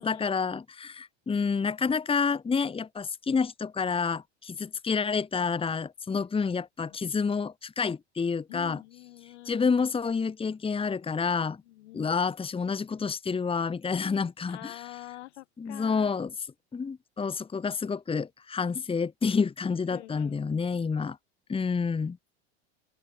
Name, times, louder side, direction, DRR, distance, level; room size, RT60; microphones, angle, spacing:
voice 1, 0.0-8.8 9.5-11.6 11.9-14.8 15.6-16.3 16.7-21.2 21.5-22.2, left 5 dB, 15° left, 2.1 m, -29 dB
voice 2, 8.5-9.7 11.6-12.1 14.5-16.1 19.9-20.7, left 17 dB, 80° left, 7.3 m, -46 dB
open air
supercardioid pair, 115°, 34 cm